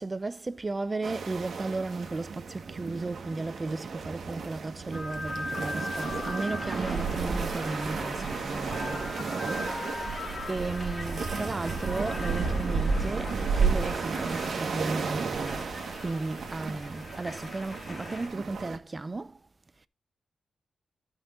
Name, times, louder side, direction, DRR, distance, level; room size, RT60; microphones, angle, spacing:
voice 1, 0.0-19.4, right 3 dB, 30° right, 0.5 m, -35 dB
sound 1, 1.0-18.8, right 5 dB, 65° right, 1.5 m, -33 dB
sound 2, 4.9-18.3, left 2 dB, 25° left, 2.6 m, -40 dB
12.0 x 5.6 x 3.9 m
wide cardioid pair, 105°, 0 cm